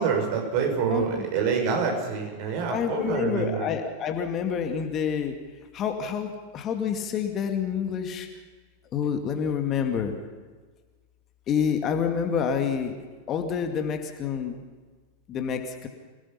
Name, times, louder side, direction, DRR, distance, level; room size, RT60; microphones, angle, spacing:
voice 1, 0.0-3.7, right 6 dB, 45° right, 2 dB, 6.2 m, -26 dB
voice 2, 0.9-1.3 2.7-5.4 5.7-8.3 8.9-10.1 11.5-13.0 13.3-14.6 15.3-15.9, left 7 dB, 30° left, 5 dB, 2.3 m, -28 dB
27.0 x 18.5 x 5.7 m, 1.4 s
figure-of-eight pair, 90°, 0 cm